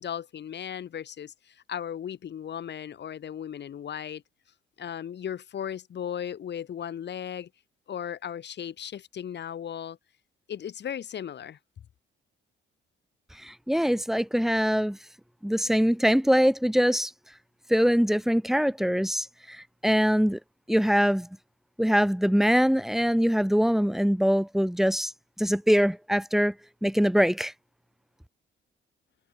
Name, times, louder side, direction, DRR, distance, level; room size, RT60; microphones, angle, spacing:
voice 1, 0.0-4.2 4.8-7.5 7.9-10.0 10.5-11.6, left 9 dB, 60° left, 5.1 m, -36 dB
voice 2, 13.3-15.0 15.4-17.1 17.7-20.4 20.7-21.3 21.8-25.1 25.4-26.6 26.8-27.5, equal, ahead, 5.5 m, -23 dB
cardioid pair, 90°, 20 cm